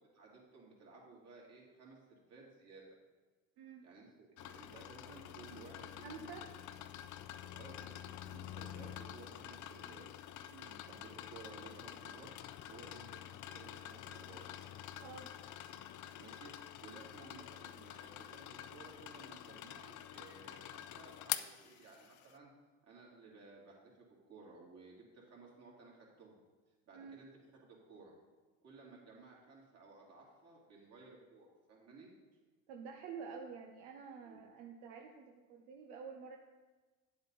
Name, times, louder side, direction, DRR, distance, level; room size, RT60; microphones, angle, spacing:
voice 1, 0.1-2.8 3.8-6.3 7.5-10.1 10.6-12.3 12.6-14.5 16.2-16.5 16.8-22.5 22.9-26.4 26.9-27.3 27.6-28.1 28.6-32.1 34.2-34.4, right 3 dB, 45° right, -3 dB, 3.4 m, -57 dB
voice 2, 3.6-3.9 6.0-6.4 10.5-10.7 15.0-15.3 26.9-27.2 32.7-36.4, right 6 dB, 80° right, 1 dB, 1.0 m, -49 dB
sound 1, 4.4-22.3, left 12 dB, 60° left, 0.6 m, -47 dB
9.4 x 7.8 x 4.2 m, 1.3 s
supercardioid pair, 85°, 34 cm